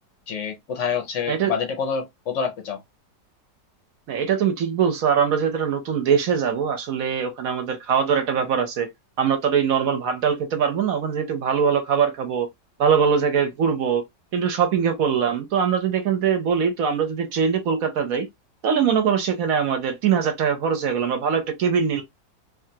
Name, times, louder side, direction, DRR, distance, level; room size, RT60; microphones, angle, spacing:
voice 1, 0.3-2.8, left 6 dB, 60° left, 0.8 m, -27 dB
voice 2, 4.1-8.9 9.2-12.5 12.8-14.0 14.3-18.3 18.6-22.0, right 7 dB, 65° right, 1.0 m, -22 dB
3.2 x 2.4 x 2.7 m
omnidirectional pair, 1.9 m